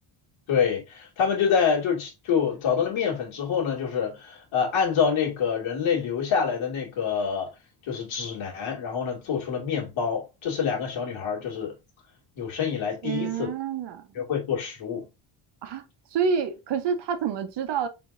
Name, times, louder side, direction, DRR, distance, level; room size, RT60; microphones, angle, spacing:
voice 1, 0.5-7.5 7.8-11.7 12.4-13.5 14.1-15.1, left 7 dB, 70° left, 2.3 m, -26 dB
voice 2, 13.0-14.0 15.6-15.8 16.1-17.9, right 6 dB, 55° right, 0.9 m, -28 dB
4.6 x 4.0 x 2.6 m
cardioid pair, 140°, 49 cm